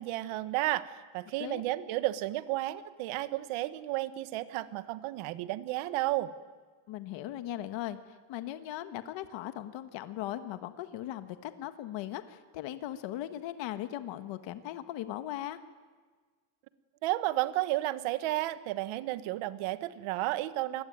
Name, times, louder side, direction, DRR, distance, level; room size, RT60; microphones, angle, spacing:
voice 1, 0.0-6.3 17.0-20.8, right 16 dB, 90° right, 13 dB, 1.6 m, -32 dB
voice 2, 6.9-15.6, left 13 dB, 65° left, 10 dB, 1.6 m, -38 dB
27.5 x 21.0 x 9.4 m, 1.5 s
cardioid pair, 175°, 48 cm